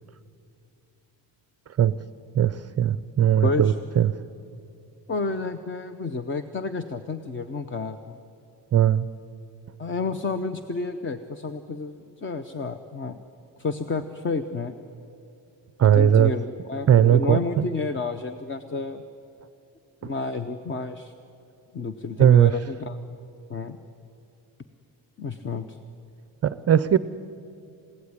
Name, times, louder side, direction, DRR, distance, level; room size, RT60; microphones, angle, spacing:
voice 1, 2.3-4.1 8.7-9.1 15.8-16.3 16.9-17.6 22.2-22.5 26.4-27.0, right 10 dB, 35° right, 15 dB, 0.5 m, -18 dB
voice 2, 3.4-3.7 5.1-8.2 9.8-13.2 13.6-14.7 15.9-19.0 20.0-21.1 21.7-23.0 23.5-23.8 25.2-25.8, left 3 dB, 25° left, 10 dB, 0.7 m, -30 dB
29.5 x 17.0 x 9.7 m, 2.7 s
cardioid pair, 175°, 45 cm